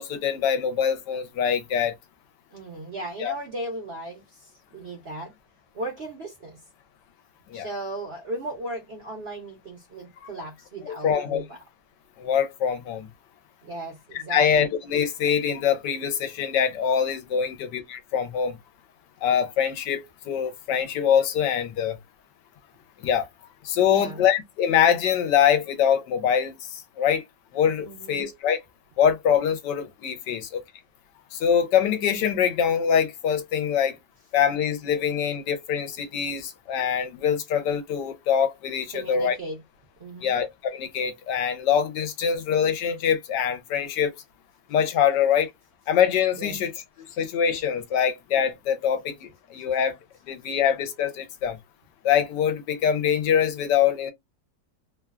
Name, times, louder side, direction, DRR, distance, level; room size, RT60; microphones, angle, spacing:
voice 1, 0.0-1.9 3.2-3.3 7.5-7.7 10.8-11.4 12.2-13.1 14.1-18.6 19.2-22.0 23.0-23.3 23.6-27.2 27.5-28.6 29.0-30.6 31.3-34.0 34.3-39.4 40.2-44.1 44.7-45.5 45.9-46.7 47.2-50.0 50.3-51.6 52.0-54.1, left 8 dB, 75° left, 1.2 m, -24 dB
voice 2, 2.5-5.3 5.7-6.6 7.5-11.6 13.6-14.7 23.8-24.2 27.8-28.2 38.9-39.6 40.0-40.4 46.4-46.6, right 2 dB, 55° right, 0.7 m, -36 dB
3.1 x 2.2 x 2.3 m
omnidirectional pair, 2.0 m